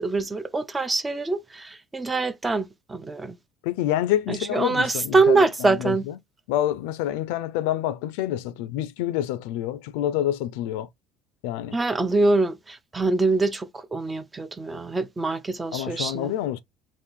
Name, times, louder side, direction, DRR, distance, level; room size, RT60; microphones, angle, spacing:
voice 1, 0.0-3.4 4.3-6.1 11.7-16.3, right 3 dB, 10° right, 0.3 m, -24 dB
voice 2, 3.6-6.0 6.5-10.9 11.4-11.8 15.7-16.6, left 12 dB, 85° left, 0.4 m, -27 dB
3.7 x 2.5 x 3.1 m
cardioid pair, 175°, 0 cm